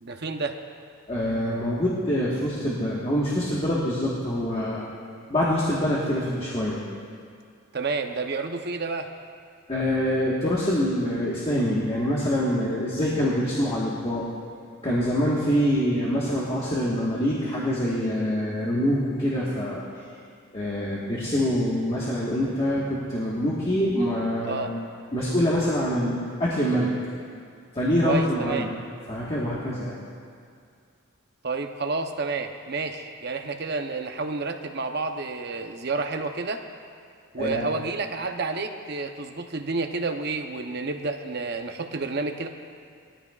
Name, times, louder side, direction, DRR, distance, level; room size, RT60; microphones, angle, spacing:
voice 1, 0.0-0.6 7.7-9.1 24.5-24.7 28.0-28.7 31.4-36.6 37.3-42.5, right 3 dB, 50° right, 5 dB, 0.7 m, -30 dB
voice 2, 1.1-4.9 5.3-6.8 9.7-14.2 14.8-19.8 20.5-24.8 25.1-26.9 27.7-28.7 29.1-30.0 37.4-37.6, equal, 25° left, -7 dB, 1.4 m, -25 dB
19.5 x 13.5 x 2.4 m, 2.2 s
head